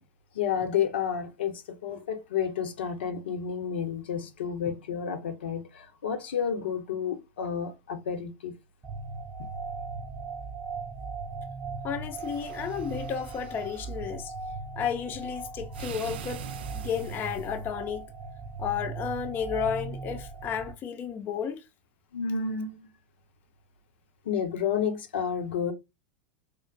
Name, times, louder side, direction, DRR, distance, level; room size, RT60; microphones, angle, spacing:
voice 1, 0.3-8.5 22.1-22.9 24.2-25.7, left 7 dB, 75° left, 0.8 m, -30 dB
sound 1, 8.8-20.7, right 4 dB, 20° right, 0.5 m, -38 dB
voice 2, 11.8-14.3 14.8-16.5 16.7-18.1 18.6-21.6, left 8 dB, 35° left, 0.6 m, -32 dB
sound 2, 12.1-13.9 15.7-17.7, right 10 dB, 70° right, 0.4 m, -43 dB
4.5 x 2.1 x 2.4 m
hypercardioid pair, 95°, 6 cm